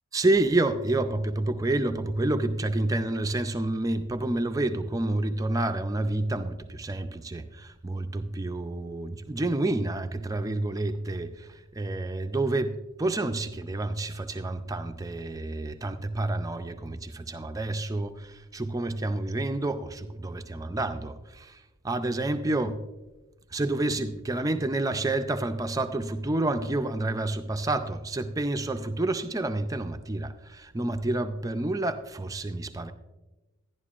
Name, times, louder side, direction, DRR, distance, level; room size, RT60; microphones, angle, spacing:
voice 1, 0.1-22.8 23.5-32.9, right 2 dB, 15° right, 8 dB, 0.4 m, -29 dB
11.5 x 11.0 x 2.4 m, 1.1 s
head